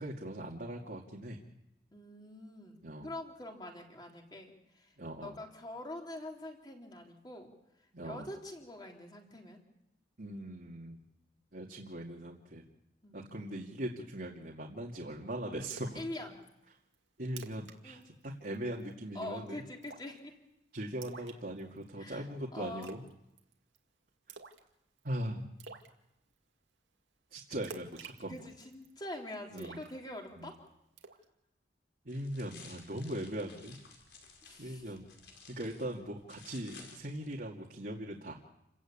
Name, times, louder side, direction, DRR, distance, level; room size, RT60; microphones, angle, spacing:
voice 1, 0.0-1.4 2.8-3.1 5.0-5.3 7.9-8.3 10.2-11.0 11.5-12.6 13.1-16.0 17.2-19.6 20.7-23.0 25.0-25.6 27.3-28.4 29.5-29.8 30.4-30.5 32.0-33.8 34.6-35.1 35.5-38.4, right 1 dB, 55° right, -2 dB, 2.3 m, -40 dB
voice 2, 1.9-5.0 5.2-7.5 8.0-9.6 13.0-13.3 15.9-16.4 17.8-18.0 19.1-20.4 22.0-22.3 22.5-22.9 28.3-30.7 34.4-35.0, left 1 dB, 25° left, 1 dB, 3.5 m, -45 dB
Splash splatter, 15.7-16.0 16.4-16.5 16.9-17.0 17.3-17.8 18.0-18.2 18.5-18.9 19.8-20.2 21.0-21.9 22.8-23.1 23.4-23.8 24.3-24.7 25.0-25.1 25.6-25.9 27.6-28.9 29.6-30.5 31.0-31.2, right 5 dB, 85° right, 2.3 m, -49 dB
sound 1, 32.1-37.4, left 5 dB, 75° left, 4.9 m, -56 dB
29.0 x 16.0 x 8.6 m, 0.88 s
head